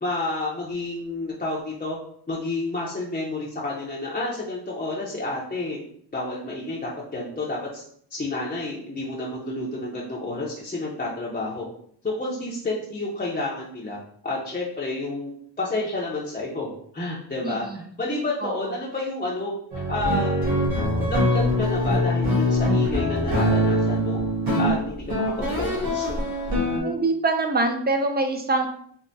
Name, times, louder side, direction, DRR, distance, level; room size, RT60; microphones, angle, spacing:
voice 1, 0.0-2.0 2.3-5.8 6.1-7.8 8.1-11.7 12.0-15.3 15.6-20.3 21.0-24.2 24.6-26.2, left 2 dB, 20° left, -5 dB, 0.6 m, -30 dB
voice 2, 17.4-17.8 18.4-18.7 26.8-28.7, right 3 dB, 25° right, 5 dB, 0.3 m, -24 dB
sound 1, 19.7-26.8, equal, 55° right, 1.1 m, -23 dB
3.3 x 2.1 x 2.6 m, 0.62 s
cardioid pair, 90°, 43 cm